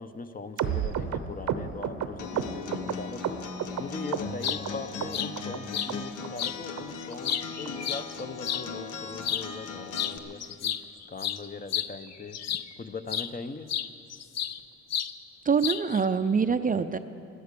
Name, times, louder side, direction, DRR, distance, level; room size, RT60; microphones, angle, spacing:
voice 1, 0.0-10.8 11.1-12.4 12.8-13.7, left 4 dB, 30° left, 10 dB, 0.8 m, -40 dB
sound 1, 0.6-3.8 4.1-4.7 5.0-5.6 5.9-6.0 6.2-6.5 6.8-6.9 7.1-7.3 7.6-7.7 8.0-8.2 8.5-8.6 8.9-9.1 9.4-9.5 9.8-10.0 10.3-10.4, right 9 dB, 75° right, 0.9 m, -32 dB
Acoustic guitar, 2.2-10.2, left 4 dB, 80° left, 1.1 m, -38 dB
sound 2, 4.4-4.6 5.1-5.3 5.7-5.9 6.4-6.6 7.0-8.6 9.2-9.5 9.9-10.2 10.4-12.7 13.1-13.3 13.7-14.6 14.9-15.1 15.6-16.0, left 9 dB, 60° left, 0.7 m, -31 dB
voice 2, 15.5-17.0, right 5 dB, 30° right, 10 dB, 0.5 m, -25 dB
15.5 x 13.0 x 6.8 m, 2.6 s
cardioid pair, 90°, 30 cm